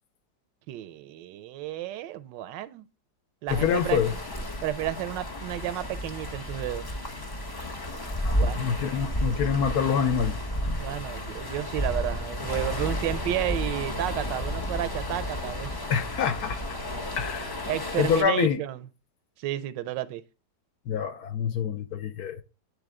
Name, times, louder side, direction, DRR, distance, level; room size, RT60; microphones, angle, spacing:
voice 1, 0.7-2.8 3.4-4.0 4.6-6.9 8.4-8.6 10.8-15.7 17.7-18.9 19.4-20.2, right 13 dB, 85° right, 1.2 m, -32 dB
voice 2, 3.5-4.1 8.2-10.4 15.9-16.6 17.2-17.6 18.0-18.6 20.9-22.4, left 8 dB, 70° left, 1.1 m, -26 dB
sound 1, 3.5-18.2, equal, 35° left, 0.3 m, -32 dB
9.7 x 3.5 x 3.5 m
omnidirectional pair, 1.9 m